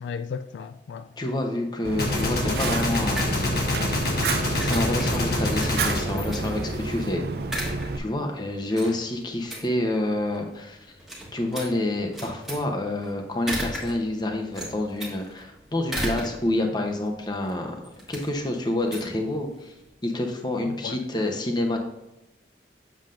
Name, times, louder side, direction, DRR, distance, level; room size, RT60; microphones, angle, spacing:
voice 1, 0.0-1.1 20.7-21.0, left 6 dB, 75° left, 0.3 m, -35 dB
voice 2, 1.2-3.2 4.6-7.2 7.5-10.8 11.3-17.8 18.1-19.7 20.0-21.8, left 1 dB, 25° left, 0.9 m, -28 dB
Fire, 1.8-8.0, right 3 dB, 55° right, 0.5 m, -31 dB
Gunshot gunfire, 2.0-7.2, left 1 dB, 55° left, 1.2 m, -26 dB
sound 1, 2.5-19.9, equal, ahead, 1.3 m, -38 dB
7.6 x 7.0 x 2.6 m
head